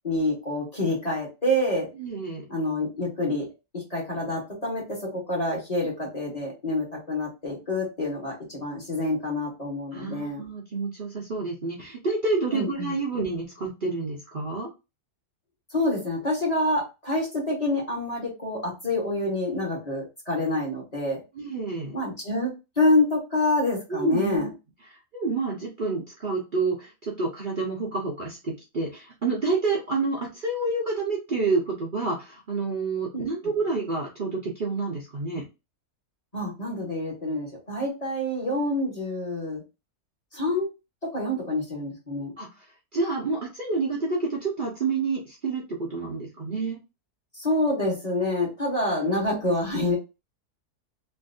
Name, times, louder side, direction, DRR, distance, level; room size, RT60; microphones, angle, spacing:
voice 1, 0.0-1.9 2.5-3.4 3.9-4.8 5.1-10.4 12.5-12.9 15.7-21.2 21.9-22.5 22.8-24.5 33.1-33.2 36.3-39.6 40.3-40.7 41.1-42.3 47.4-50.0, left 1 dB, 25° left, -3 dB, 1.3 m, -27 dB
voice 2, 1.9-2.4 9.9-14.7 21.3-22.0 23.9-24.5 24.9-35.4 42.4-42.5 42.9-46.8, right 3 dB, 40° right, -3 dB, 0.8 m, -29 dB
3.3 x 2.7 x 2.6 m, 0.27 s
omnidirectional pair, 1.6 m